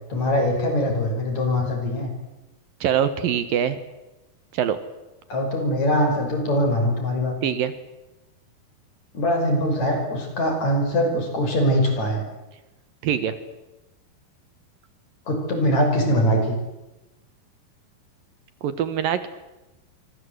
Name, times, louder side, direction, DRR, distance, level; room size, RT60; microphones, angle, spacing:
voice 1, 0.1-2.1 5.3-7.4 9.1-12.2 15.3-16.6, equal, 45° left, 4 dB, 6.7 m, -22 dB
voice 2, 2.8-3.8 4.5-4.8 7.4-7.7 13.0-13.3 18.6-19.3, right 9 dB, 70° right, 12 dB, 2.9 m, -23 dB
28.0 x 24.0 x 8.1 m, 1.0 s
omnidirectional pair, 4.4 m